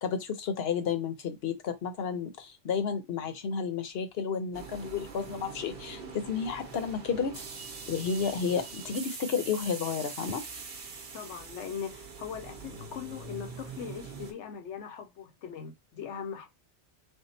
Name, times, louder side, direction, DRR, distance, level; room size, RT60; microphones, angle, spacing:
voice 1, 0.0-10.4, left 6 dB, 65° left, 1.0 m, -32 dB
sound 1, 4.5-14.3, right 4 dB, 60° right, 1.0 m, -43 dB
voice 2, 11.1-16.5, left 7 dB, 80° left, 1.1 m, -40 dB
3.6 x 2.2 x 4.0 m
omnidirectional pair, 1.2 m